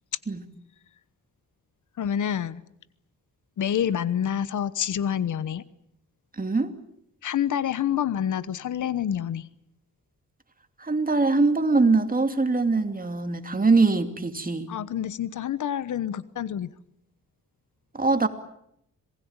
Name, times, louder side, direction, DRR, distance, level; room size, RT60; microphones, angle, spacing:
voice 1, 2.0-2.6 3.6-5.6 7.2-9.5 14.7-16.7, left 9 dB, 85° left, 16 dB, 1.2 m, -27 dB
voice 2, 6.4-6.7 10.9-14.7 18.0-18.3, right 3 dB, 30° right, 8 dB, 2.6 m, -22 dB
27.0 x 20.0 x 8.9 m, 0.74 s
cardioid pair, 90°, 29 cm